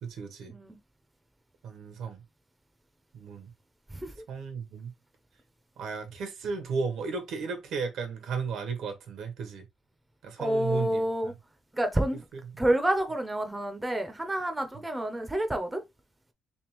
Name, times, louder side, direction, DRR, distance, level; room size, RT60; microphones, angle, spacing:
voice 1, 0.0-0.6 1.6-2.2 3.1-3.5 4.3-4.9 5.8-9.7 10.2-11.3 12.3-12.4, right 5 dB, 75° right, 1.0 m, -34 dB
voice 2, 10.4-11.3 11.8-12.2 12.6-15.8, right 1 dB, 10° right, 0.6 m, -28 dB
3.5 x 3.2 x 3.0 m
cardioid pair, 120°, 0 cm